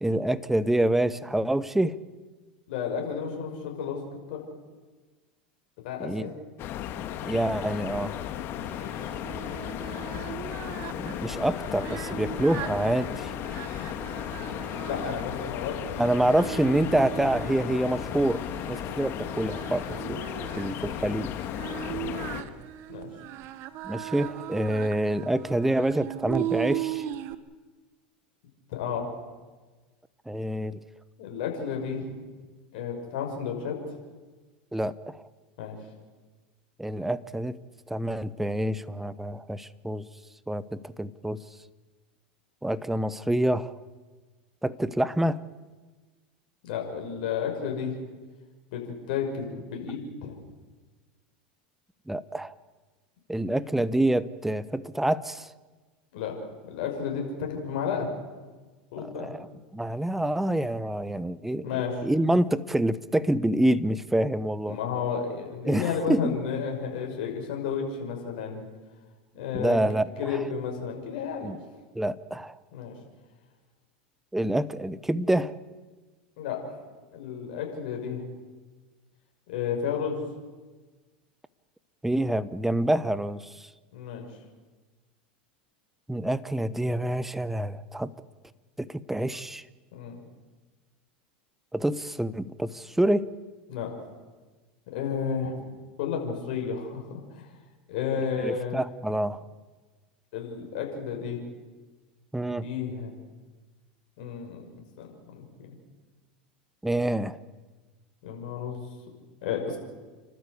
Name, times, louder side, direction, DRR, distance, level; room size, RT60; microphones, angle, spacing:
voice 1, 0.0-2.0 6.0-6.3 7.2-8.2 10.9-13.3 16.0-20.2 20.6-21.3 23.8-27.0 30.3-30.8 34.7-35.2 36.8-37.6 37.9-40.0 40.5-41.4 42.6-43.7 44.6-45.4 52.1-52.5 53.3-55.5 59.0-59.5 59.7-64.8 65.6-66.3 69.5-70.1 71.4-71.6 71.9-72.6 74.3-75.5 82.0-83.7 86.1-88.1 88.8-89.6 91.7-93.3 98.4-99.4 102.3-102.7 106.8-107.4, right 1 dB, 5° right, 16 dB, 1.0 m, -27 dB
voice 2, 2.7-4.0 4.3-4.4 5.8-6.3 8.7-8.9 14.9-16.0 22.0-22.3 22.9-23.1 28.7-29.1 31.2-32.2 32.7-33.8 35.6-35.8 46.6-48.0 48.7-48.8 49.1-50.3 56.1-56.3 56.7-58.1 58.9-59.3 61.6-61.9 64.6-68.7 69.3-69.8 70.2-71.5 72.7-72.9 76.4-76.6 77.1-78.2 79.5-80.2 83.9-84.3 89.9-90.2 93.7-93.9 94.9-95.6 96.0-97.5 97.9-98.8 100.3-101.4 102.6-103.1 104.2-104.6 105.3-105.4 108.2-108.8 109.4-109.8, left 7 dB, 65° left, 1 dB, 6.0 m, -32 dB
sound 1, 6.6-22.4, left 10 dB, 45° left, 2.1 m, -35 dB
Singing, 8.6-27.3, right 13 dB, 55° right, 1.4 m, -38 dB
29.5 x 12.5 x 8.4 m, 1.3 s
hypercardioid pair, 105°, 5 cm